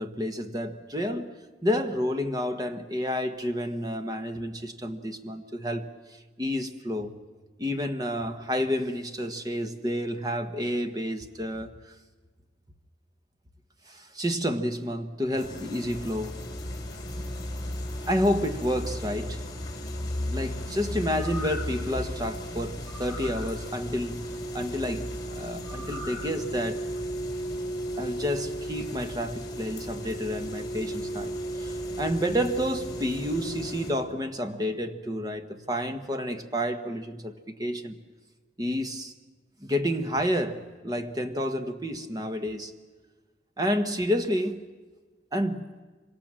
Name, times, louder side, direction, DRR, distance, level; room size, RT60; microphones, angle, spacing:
voice 1, 0.0-1.3 1.6-5.9 6.4-7.2 7.6-11.9 13.9-16.4 18.0-19.4 20.3-24.3 24.5-26.8 28.0-38.0 38.6-39.1 39.6-42.7 43.6-44.6 45.3-45.7, equal, 20° right, 1.3 m, -30 dB
sound 1, 15.4-33.9, equal, 25° left, 3.9 m, -35 dB
sound 2, 21.2-21.8 22.9-23.5 25.6-26.3 26.8-26.9, left 2 dB, 5° right, 2.4 m, -41 dB
26.0 x 24.0 x 7.5 m
head